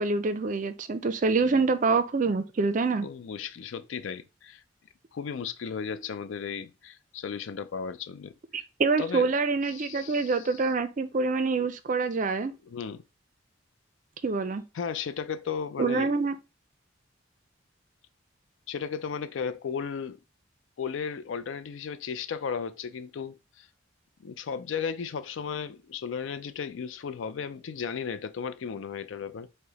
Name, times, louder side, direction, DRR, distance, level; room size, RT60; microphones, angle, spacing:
voice 1, 0.0-3.1 8.5-12.5 14.2-14.6 15.8-16.4, right 4 dB, 40° right, 0.4 m, -26 dB
voice 2, 3.0-4.6 5.1-8.3 9.0-9.3 9.7-10.7 12.6-13.0 14.7-16.1 18.7-20.2 20.8-23.7 24.2-29.5, left 6 dB, 80° left, 0.4 m, -35 dB
4.8 x 2.1 x 3.9 m
head